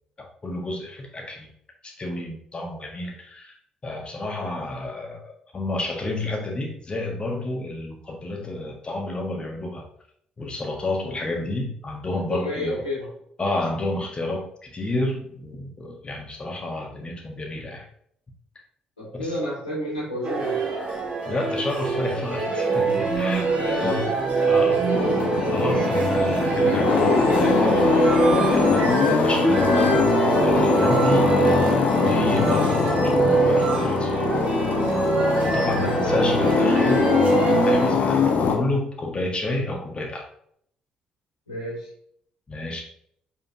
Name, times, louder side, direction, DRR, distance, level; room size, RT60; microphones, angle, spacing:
voice 1, 0.2-1.5 1.8-3.6 3.8-9.9 10.4-12.8 13.4-17.9 19.1-19.3 21.3-23.5 23.8-24.1 24.4-24.9 25.5-34.3 35.4-40.3 42.5-42.8, left 2 dB, 30° left, 1 dB, 1.7 m, -30 dB
voice 2, 12.1-13.1 19.0-20.7 23.5-23.9 26.6-27.2 35.6-36.2 41.5-41.9, left 1 dB, 85° left, -8 dB, 2.8 m, -31 dB
sound 1, 20.2-37.9, right 4 dB, 40° right, 2.2 m, -23 dB
sound 2, 24.9-38.6, left 5 dB, 50° left, 1.1 m, -22 dB
6.8 x 5.4 x 2.8 m, 0.66 s
figure-of-eight pair, 45°, 4 cm